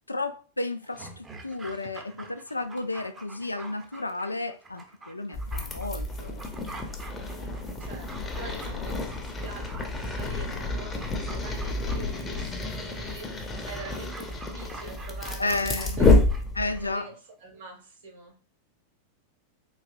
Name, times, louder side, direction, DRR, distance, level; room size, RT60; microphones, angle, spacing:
voice 1, 0.1-6.4 15.4-16.0 16.6-17.1, left 2 dB, 80° left, 0.3 m, -32 dB
Dog, 0.8-17.1 17.4-17.5, right 3 dB, 20° right, 0.7 m, -47 dB
sound 1, 5.3-16.9, left 2 dB, 15° left, 0.7 m, -29 dB
voice 2, 7.2-7.5 7.8-16.1 16.6-18.3, right 2 dB, 60° right, 1.6 m, -44 dB
3.9 x 2.9 x 2.5 m
figure-of-eight pair, 90°, 0 cm